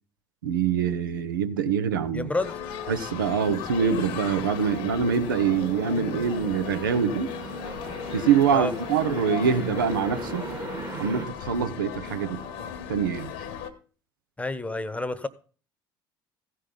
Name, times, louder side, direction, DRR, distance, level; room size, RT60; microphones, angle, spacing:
voice 1, 0.4-2.3 2.9-7.3 8.1-10.4 11.0-12.4 12.9-13.3, right 6 dB, 85° right, 0.7 m, -24 dB
voice 2, 2.1-2.6 8.5-8.7 14.4-15.3, left 2 dB, 10° left, 1.0 m, -29 dB
sound 1, 2.4-13.7, left 7 dB, 70° left, 1.2 m, -37 dB
sound 2, 3.4-11.3, right 5 dB, 40° right, 2.1 m, -40 dB
15.5 x 5.6 x 5.3 m
hypercardioid pair, 60°, 11 cm